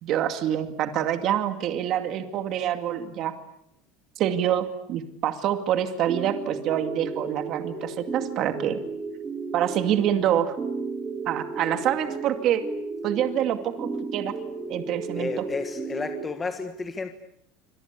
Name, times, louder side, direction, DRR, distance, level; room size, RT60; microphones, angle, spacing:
voice 1, 0.0-3.3 4.2-8.8 9.5-10.5 11.3-12.6 13.0-14.3 14.7-15.4, right 10 dB, 35° right, 8 dB, 2.3 m, -26 dB
sound 1, 6.0-16.3, right 4 dB, 15° right, 3.2 m, -34 dB
voice 2, 15.1-17.1, left 4 dB, 15° left, 7 dB, 1.6 m, -32 dB
26.5 x 26.0 x 8.4 m, 0.76 s
cardioid pair, 170°, 0 cm